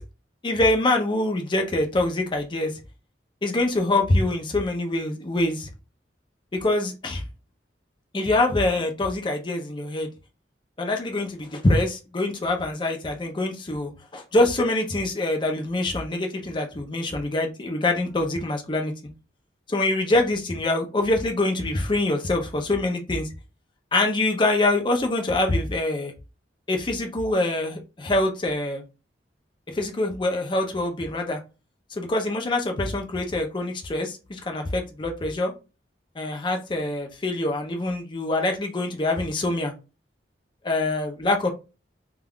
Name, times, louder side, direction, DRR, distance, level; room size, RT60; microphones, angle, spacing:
voice 1, 0.4-2.8 3.4-5.7 6.5-7.2 8.1-10.1 10.8-18.9 19.7-23.3 23.9-26.1 26.7-28.8 29.7-31.4 31.9-35.5 36.2-39.7 40.6-41.5, left 2 dB, 25° left, 0.5 m, -25 dB
2.4 x 2.3 x 3.4 m
head